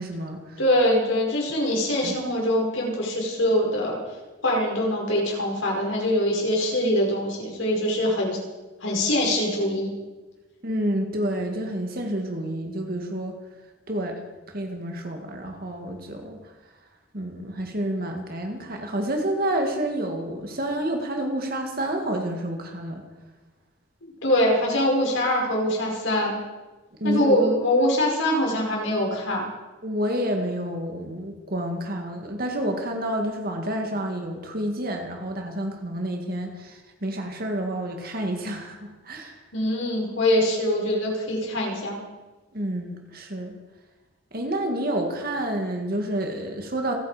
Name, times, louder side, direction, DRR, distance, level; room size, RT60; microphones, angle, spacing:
voice 1, 0.0-0.4 2.0-2.1 10.6-13.3 13.9-14.2 14.5-16.4 17.1-23.0 27.0-27.4 29.8-39.4 42.5-43.6 44.3-46.9, right 1 dB, 50° right, 3 dB, 2.2 m, -29 dB
voice 2, 0.6-4.0 4.4-8.4 8.8-9.9 24.2-26.4 27.0-29.5 39.5-42.0, left 1 dB, 85° left, -1 dB, 5.6 m, -23 dB
28.0 x 9.8 x 5.1 m, 1.2 s
head